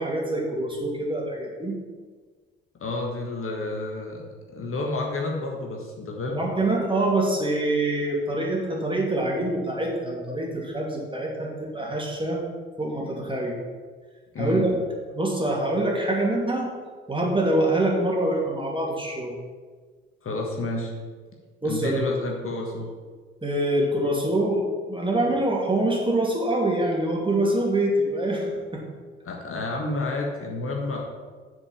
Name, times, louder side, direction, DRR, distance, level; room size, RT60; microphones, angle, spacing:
voice 1, 0.0-1.8 6.3-12.4 12.8-13.6 14.4-14.8 15.1-16.7 17.1-19.4 21.6-22.1 23.4-28.8, right 1 dB, 15° right, -2 dB, 2.6 m, -25 dB
voice 2, 2.8-4.2 4.5-6.4 14.3-14.7 20.2-20.9 21.6-22.9 29.2-31.0, left 2 dB, 40° left, 0 dB, 1.6 m, -30 dB
7.1 x 5.1 x 7.2 m, 1.5 s
hypercardioid pair, 50°, 32 cm